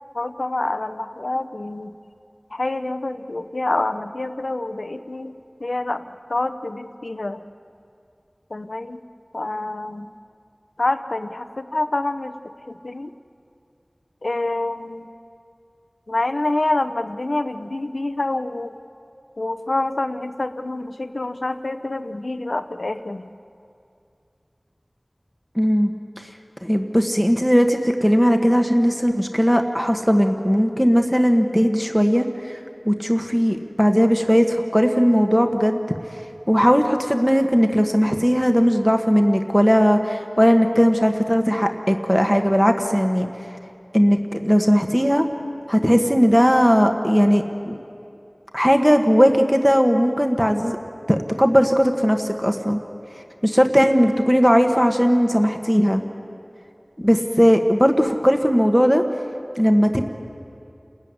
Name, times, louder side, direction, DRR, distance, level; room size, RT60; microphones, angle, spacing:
voice 1, 0.1-1.9 2.5-5.3 5.6-7.4 8.5-9.0 9.3-10.1 10.8-12.3 12.7-13.1 14.2-15.1 16.1-18.7 19.4-23.3, left 2 dB, 80° left, 10 dB, 0.8 m, -26 dB
voice 2, 25.5-25.9 26.2-26.3 26.6-32.6 32.8-35.8 36.5-43.3 43.9-45.2 45.7-47.8 48.5-50.8 51.1-52.8 53.4-56.0 57.0-59.0 59.6-60.0, equal, ahead, 4 dB, 1.4 m, -18 dB
29.0 x 14.0 x 9.7 m, 2.6 s
wide cardioid pair, 40°, 0 cm